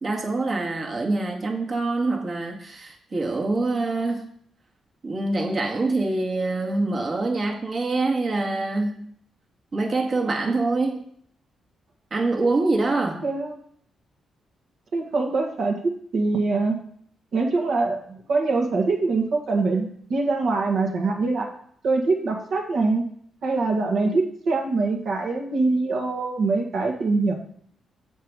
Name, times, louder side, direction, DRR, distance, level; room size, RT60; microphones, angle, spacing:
voice 1, 0.0-4.3 5.0-9.1 9.7-11.1 12.1-13.3, right 2 dB, 45° right, 0 dB, 1.8 m, -25 dB
voice 2, 13.2-13.6 14.9-16.8 17.3-21.5 21.8-23.0 23.4-27.3, right 3 dB, 70° right, 1 dB, 1.7 m, -23 dB
7.3 x 5.6 x 4.8 m, 0.63 s
cardioid pair, 80°, 0 cm